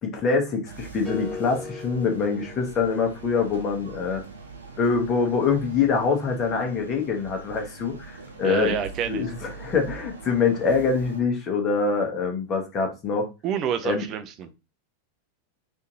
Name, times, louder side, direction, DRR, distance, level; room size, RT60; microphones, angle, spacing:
voice 1, 0.0-4.2 4.8-8.8 9.1-13.3 13.8-14.0, left 5 dB, 30° left, 1.1 m, -24 dB
sound 1, 0.7-11.2, right 4 dB, 75° right, 0.8 m, -42 dB
sound 2, 1.0-3.4, left 4 dB, 5° left, 0.9 m, -38 dB
voice 2, 8.4-9.3 13.4-14.5, right 8 dB, 35° right, 0.5 m, -28 dB
3.5 x 2.6 x 2.9 m
figure-of-eight pair, 90°, 0 cm